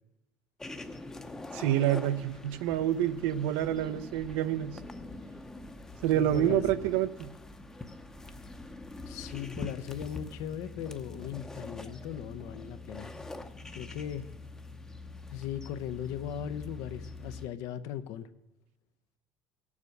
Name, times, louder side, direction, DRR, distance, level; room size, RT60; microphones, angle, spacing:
sound 1, 0.6-17.5, left 2 dB, 10° left, 0.7 m, -44 dB
voice 1, 1.5-4.8 6.0-7.3, right 11 dB, 85° right, 13 dB, 0.7 m, -28 dB
voice 2, 6.1-6.6 9.1-13.1 13.7-14.3 15.3-18.3, left 10 dB, 70° left, 12 dB, 0.7 m, -38 dB
16.5 x 7.3 x 6.5 m, 1.0 s
cardioid pair, 140°, 6 cm